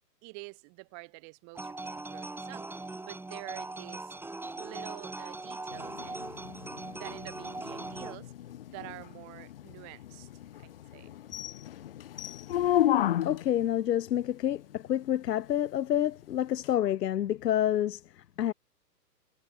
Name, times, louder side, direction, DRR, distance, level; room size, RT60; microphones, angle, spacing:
voice 1, 0.2-4.2 4.6-6.3 7.0-8.3 8.7-10.3 10.6-11.1, right 33 dB, 35° right, 6.4 m, -47 dB
sound 1, 1.5-8.2, right 2 dB, 5° right, 3.7 m, -40 dB
sound 2, 5.7-13.6 16.6-16.7, left 12 dB, 40° left, 0.4 m, -33 dB
voice 2, 13.2-18.5, left 11 dB, 75° left, 0.9 m, -28 dB
hypercardioid pair, 130°, 49 cm